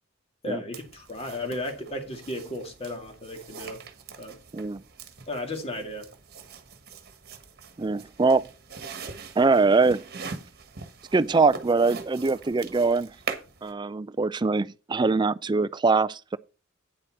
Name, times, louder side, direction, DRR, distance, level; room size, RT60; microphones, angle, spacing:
voice 1, 0.4-3.8 4.2-4.4 5.3-6.1, left 1 dB, 30° left, 2.2 m, -34 dB
sound 1, 0.7-13.7, right 5 dB, 45° right, 1.4 m, -42 dB
voice 2, 7.8-8.5 9.4-10.0 11.1-13.1 13.6-16.4, right 4 dB, 20° right, 0.4 m, -23 dB
9.3 x 7.5 x 4.4 m
head